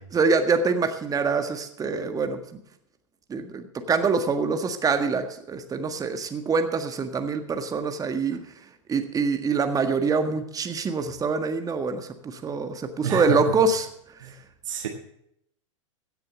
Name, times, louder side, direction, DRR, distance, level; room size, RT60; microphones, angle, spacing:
voice 1, 0.1-2.6 3.3-8.4 8.9-13.9, right 4 dB, 20° right, 7 dB, 1.6 m, -25 dB
voice 2, 13.0-13.5 14.2-14.3 14.7-14.9, right 5 dB, 75° right, 2 dB, 1.7 m, -28 dB
16.0 x 6.9 x 7.5 m, 0.72 s
hypercardioid pair, 95°, 17 cm